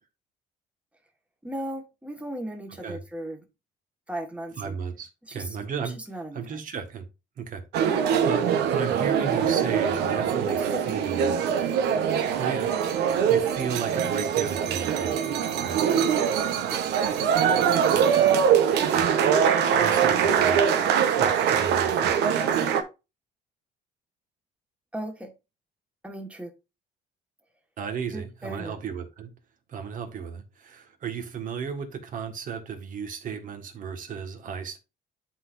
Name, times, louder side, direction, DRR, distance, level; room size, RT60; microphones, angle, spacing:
voice 1, 1.4-3.4 4.1-4.8 5.3-5.5 5.8-6.6 7.8-8.3 10.4-11.3 16.7-16.8 17.5-18.0 24.9-25.3 26.0-26.5 28.1-28.7, right 1 dB, 5° right, 1.5 m, -37 dB
voice 2, 4.6-6.0 6.3-7.1 7.4-10.6 10.9-11.3 12.3-15.3 15.6-15.8 17.9-18.0 18.9-20.6 21.2-22.2 27.8-29.3 29.7-34.8, right 6 dB, 50° right, 1.6 m, -35 dB
sound 1, 7.7-22.8, right 8 dB, 85° right, 1.0 m, -23 dB
11.0 x 4.1 x 2.6 m
cardioid pair, 110°, 17 cm